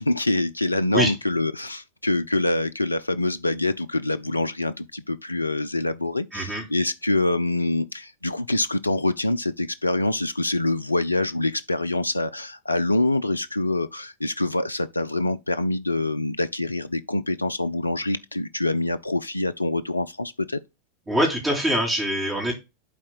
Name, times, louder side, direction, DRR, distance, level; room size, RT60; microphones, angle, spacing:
voice 1, 0.0-20.6, left 2 dB, 85° left, 0.3 m, -25 dB
voice 2, 6.3-6.6 21.1-22.5, equal, 10° right, 3.0 m, -23 dB
11.5 x 4.3 x 2.3 m
figure-of-eight pair, 90°, 0 cm